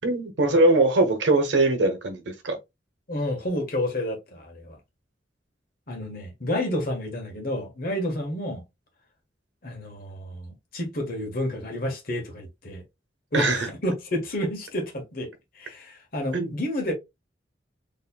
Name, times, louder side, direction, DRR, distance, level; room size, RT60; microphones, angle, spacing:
voice 1, 0.0-2.6 13.3-13.7 16.3-16.5, right 2 dB, 75° right, 1.0 m, -21 dB
voice 2, 3.1-4.8 5.9-8.6 9.6-12.8 13.3-15.3 15.5-16.9, left 1 dB, 50° left, 1.3 m, -30 dB
4.3 x 3.2 x 2.2 m
head